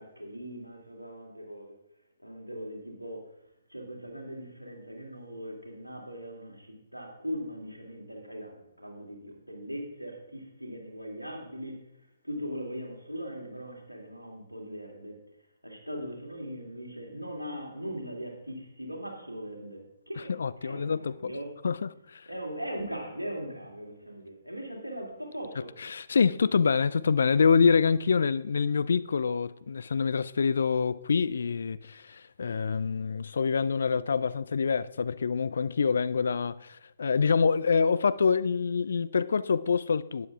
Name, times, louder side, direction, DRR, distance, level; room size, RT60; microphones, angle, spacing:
voice 1, 0.0-1.7 2.2-3.3 3.7-11.8 12.2-15.2 15.6-20.3 20.6-21.6 22.3-25.7, equal, 90° right, 2.7 m, -40 dB
voice 2, 20.3-21.3 21.6-22.3 25.9-40.3, left 5 dB, 60° left, 0.4 m, -26 dB
12.0 x 9.6 x 3.5 m
figure-of-eight pair, 130°, 0 cm